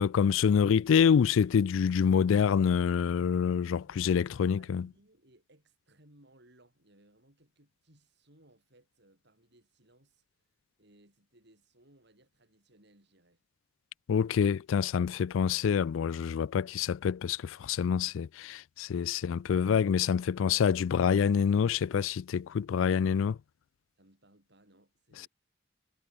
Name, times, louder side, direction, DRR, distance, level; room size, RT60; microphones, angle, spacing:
voice 1, 0.0-4.9 14.1-23.4, left 7 dB, 85° left, 0.4 m, -26 dB
voice 2, 3.8-10.2 10.8-13.4 18.9-19.2 24.0-25.3, right 1 dB, 60° right, 7.9 m, -63 dB
head